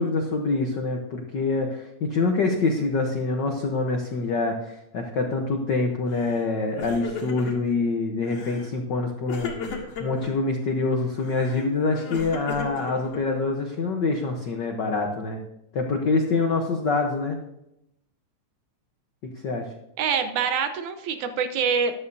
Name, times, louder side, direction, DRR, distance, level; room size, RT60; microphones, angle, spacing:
voice 1, 0.0-15.4 15.7-17.4 19.3-19.7, left 3 dB, 80° left, 3 dB, 0.9 m, -25 dB
Crying sobbing, 6.1-6.5 6.7-7.8 8.3-8.7 9.3-10.3 11.2-13.4, left 4 dB, 60° left, 2.8 m, -35 dB
voice 2, 20.0-21.9, right 6 dB, 75° right, 8 dB, 2.2 m, -25 dB
13.5 x 11.5 x 2.7 m, 0.84 s
omnidirectional pair, 3.5 m